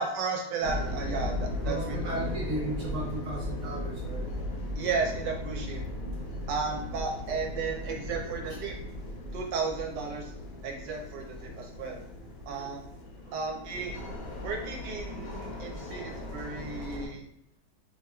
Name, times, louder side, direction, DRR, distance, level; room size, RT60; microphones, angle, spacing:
voice 1, 0.0-2.0 4.8-5.8 6.5-8.8 9.3-10.3 10.6-12.0 12.5-12.9 13.3-13.9 14.4-17.3, right 4 dB, 75° right, 1 dB, 1.2 m, -34 dB
sound 1, 0.6-17.1, left 1 dB, 65° left, 0.9 m, -37 dB
voice 2, 1.6-4.3 8.4-8.6 12.5-12.7, right 2 dB, 50° right, -3 dB, 1.0 m, -35 dB
4.4 x 2.8 x 2.3 m, 0.72 s
omnidirectional pair, 2.0 m